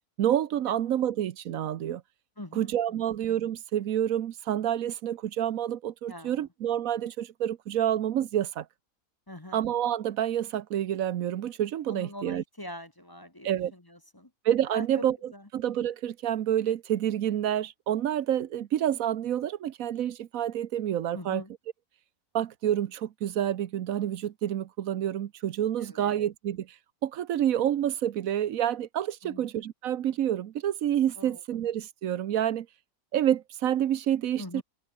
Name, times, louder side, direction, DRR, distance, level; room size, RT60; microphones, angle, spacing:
voice 1, 0.2-2.0 2.6-8.7 9.5-12.4 13.4-13.7 14.4-15.2 15.5-21.4 22.3-26.7 27.0-32.7 33.1-34.6, right 10 dB, 80° right, 1.2 m, -28 dB
voice 2, 2.4-3.2 6.1-6.5 9.3-9.6 11.9-14.3 14.7-15.5 21.1-21.5 25.8-26.3 29.2-29.5 31.2-31.4 34.4-34.6, left 1 dB, 15° left, 1.3 m, -43 dB
omnidirectional pair, 1.4 m